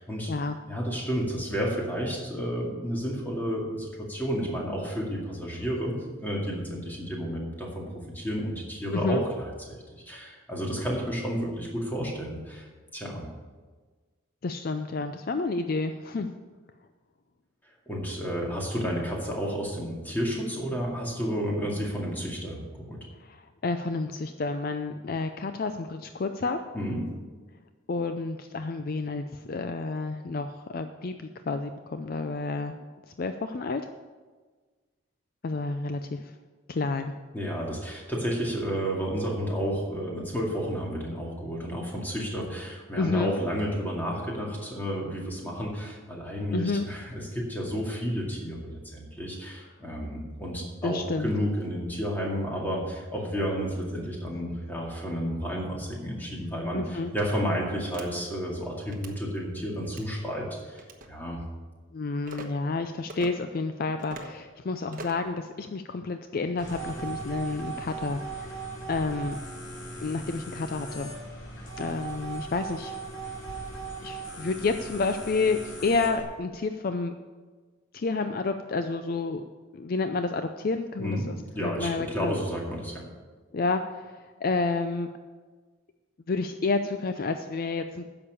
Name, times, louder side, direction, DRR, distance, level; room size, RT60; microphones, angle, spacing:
voice 1, 0.0-0.3 0.7-9.8 10.1-13.3 17.9-23.0 26.7-27.1 37.3-61.4 81.0-83.1, equal, 10° left, -2 dB, 2.2 m, -31 dB
voice 2, 8.9-9.2 14.4-16.3 23.2-26.6 27.9-32.8 33.1-33.8 35.4-36.3 36.7-37.1 43.0-43.3 46.5-46.9 50.8-51.3 56.7-57.1 61.9-69.4 70.0-71.1 71.8-73.0 74.0-77.2 77.9-79.4 79.7-82.4 83.5-85.1 86.3-88.0, left 3 dB, 45° left, 8 dB, 0.4 m, -30 dB
sound 1, 57.9-58.1 58.9-59.2 59.8-60.1 60.8-61.1 62.3-62.5 63.1-63.3 64.0-64.3 64.9-65.3, right 2 dB, 40° right, 1.1 m, -42 dB
sound 2, 66.6-76.2, right 3 dB, 60° left, 3.7 m, -38 dB
10.0 x 6.9 x 6.9 m, 1.4 s
head